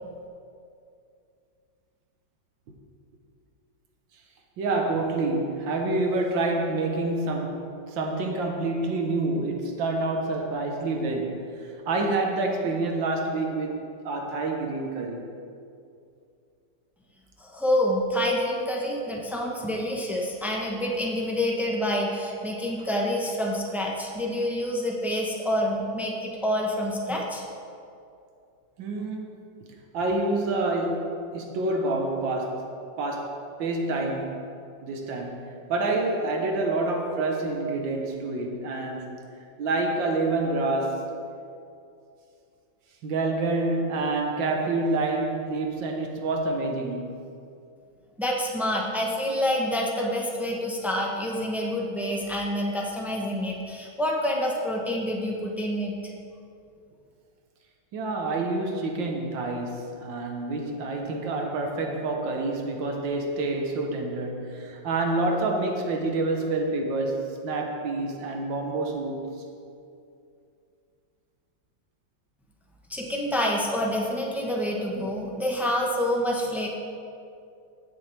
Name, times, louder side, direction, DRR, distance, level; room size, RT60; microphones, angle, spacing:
voice 1, 4.6-15.3 28.8-29.7 29.9-32.7 33.0-34.5 34.8-39.2 39.6-41.2 43.0-47.2 57.9-69.3, right 2 dB, 80° right, 2 dB, 1.8 m, -28 dB
voice 2, 17.4-27.4 48.2-56.0 72.9-76.7, equal, ahead, -2 dB, 0.3 m, -27 dB
16.0 x 6.5 x 3.4 m, 2.5 s
omnidirectional pair, 2.0 m